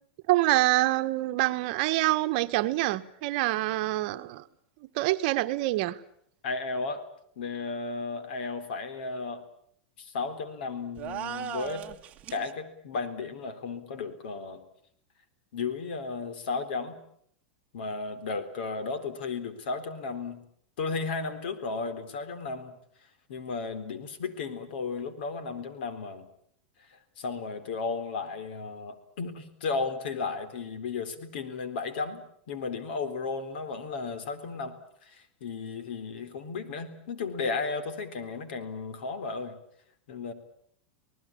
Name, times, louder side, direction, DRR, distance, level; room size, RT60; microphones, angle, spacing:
voice 1, 0.3-4.4 4.9-6.0, right 18 dB, 50° right, 10 dB, 1.3 m, -26 dB
voice 2, 6.4-7.1 7.4-9.4 10.0-11.9 12.3-14.6 15.5-17.0 17.7-20.4 20.8-22.8 23.3-26.3 26.9-34.8 35.0-39.6 40.1-40.3, left 4 dB, 75° left, 10 dB, 4.0 m, -34 dB
sound 1, 11.0-12.5, right 9 dB, 30° right, 1.6 m, -37 dB
26.5 x 19.5 x 8.7 m, 0.66 s
supercardioid pair, 155°, 6 cm